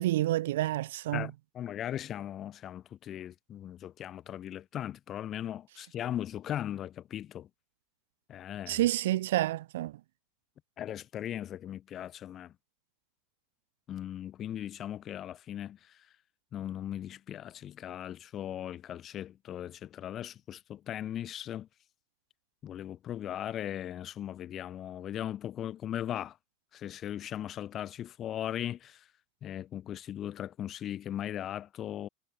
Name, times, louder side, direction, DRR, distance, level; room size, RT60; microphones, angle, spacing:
voice 1, 0.0-1.3 8.7-10.0, right 15 dB, 80° right, 1.3 m, -29 dB
voice 2, 1.1-7.5 8.3-8.9 10.8-12.5 13.9-15.8 16.5-21.7 22.6-26.4 26.7-29.0 29.4-32.1, left 11 dB, 30° left, 4.4 m, -38 dB
supercardioid pair, 135°, 0 cm